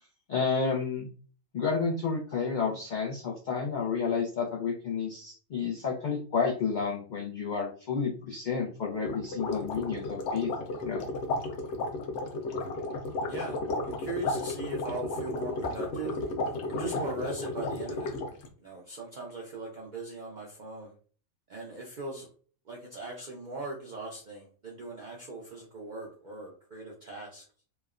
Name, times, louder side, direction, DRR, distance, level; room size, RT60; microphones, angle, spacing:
voice 1, 0.3-1.1 1.5-10.5 10.8-11.1, left 5 dB, 85° left, -1 dB, 0.4 m, -30 dB
sound 1, 9.0-18.5, left 2 dB, 65° left, 0.8 m, -33 dB
voice 2, 13.3-18.2 18.6-20.9 21.5-22.3 22.7-27.4, right 2 dB, 65° right, -2 dB, 0.4 m, -39 dB
3.1 x 2.0 x 2.3 m, 0.42 s
omnidirectional pair, 1.4 m